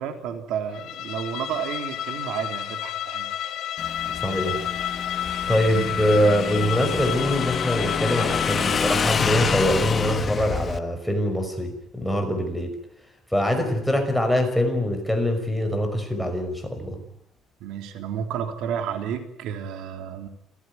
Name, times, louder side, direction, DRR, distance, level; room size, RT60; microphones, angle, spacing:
voice 1, 0.0-3.3 17.6-20.3, right 8 dB, 75° right, 6 dB, 3.6 m, -31 dB
Bowed string instrument, 0.7-9.1, left 11 dB, 60° left, 2.6 m, -31 dB
Motorcycle / Engine, 3.8-10.8, left 5 dB, 30° left, 1.4 m, -28 dB
voice 2, 4.2-4.6 5.5-12.8 13.3-17.0, equal, ahead, 4 dB, 5.6 m, -23 dB
28.5 x 16.0 x 9.6 m, 0.79 s
cardioid pair, 145°, 0 cm